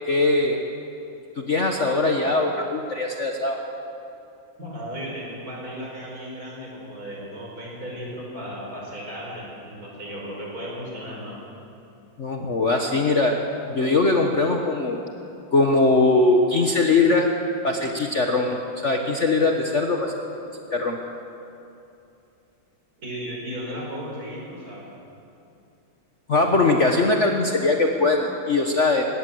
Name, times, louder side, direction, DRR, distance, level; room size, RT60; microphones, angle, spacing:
voice 1, 0.1-0.6 1.4-3.6 12.2-13.4 13.7-15.0 15.5-17.3 17.6-20.1 20.7-21.0 26.3-29.0, left 3 dB, 40° left, 2 dB, 1.3 m, -21 dB
voice 2, 4.6-11.4 23.0-24.8, equal, 45° right, -3 dB, 5.9 m, -35 dB
20.0 x 17.5 x 7.9 m, 2.7 s
omnidirectional pair, 2.1 m